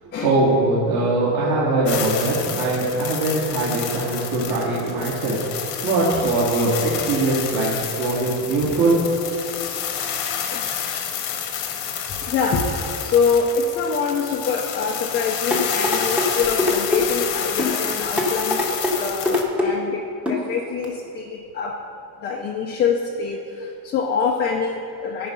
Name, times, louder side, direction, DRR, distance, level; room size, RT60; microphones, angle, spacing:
voice 1, 0.2-9.0, right 2 dB, 50° right, -8 dB, 1.6 m, -21 dB
sound 1, 1.9-19.4, left 8 dB, 80° left, 1.1 m, -29 dB
voice 2, 12.0-12.7 13.0-21.8 22.2-25.3, left 5 dB, 25° left, 0 dB, 0.3 m, -25 dB
sound 2, 15.5-16.3 16.6-17.0 17.6-17.8 18.2-18.9 19.3-19.7 20.3-20.4 20.8-20.9, left 2 dB, 5° right, 0.7 m, -22 dB
13.0 x 4.7 x 5.5 m, 2.7 s
cardioid pair, 175°, 44 cm